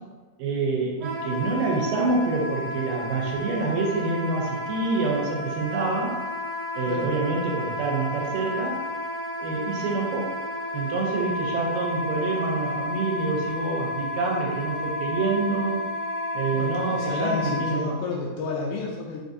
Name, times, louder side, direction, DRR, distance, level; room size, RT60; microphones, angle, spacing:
voice 1, 0.4-6.1 6.8-8.8 9.4-10.3 10.7-15.8 16.4-17.9, right 3 dB, 85° right, -1 dB, 2.3 m, -27 dB
Wind instrument woodwind instrument, 1.0-17.8, left 1 dB, 45° right, 1.1 m, -32 dB
voice 2, 16.5-19.2, left 4 dB, 80° left, -2 dB, 1.9 m, -31 dB
5.4 x 2.5 x 2.6 m, 1.3 s
omnidirectional pair, 4.0 m